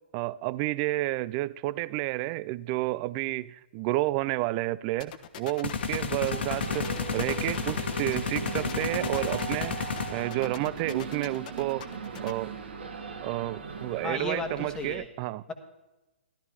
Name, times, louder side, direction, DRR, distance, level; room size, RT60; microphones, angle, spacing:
voice 1, 0.1-11.9 12.2-12.6 13.2-15.4, right 18 dB, 30° right, 0.3 m, -31 dB
sound 1, 5.0-12.3, left 10 dB, 45° left, 1.0 m, -42 dB
sound 2, 5.6-10.5, left 5 dB, 75° left, 1.5 m, -32 dB
sound 3, 6.3-15.0, right 5 dB, 75° right, 2.0 m, -38 dB
voice 2, 14.0-15.1, left 3 dB, 10° left, 1.3 m, -34 dB
14.0 x 12.5 x 3.5 m
hypercardioid pair, 140°, 6 cm